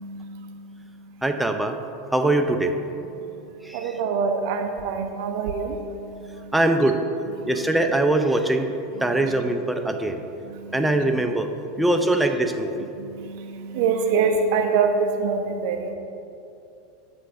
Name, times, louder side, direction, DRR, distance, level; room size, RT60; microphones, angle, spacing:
voice 1, 0.0-1.2 3.2-6.6 7.4-7.7 8.9-9.3 10.4-11.1 11.8-11.9 12.8-15.9, right 5 dB, 60° right, 5 dB, 0.5 m, -27 dB
voice 2, 1.2-1.8 2.1-2.8 3.6-3.8 6.5-7.0 7.5-8.7 9.0-10.2 10.7-11.5 11.8-12.9, right 2 dB, 5° right, 5 dB, 0.5 m, -22 dB
7.6 x 2.6 x 5.7 m, 2.8 s
hypercardioid pair, 85°, 0 cm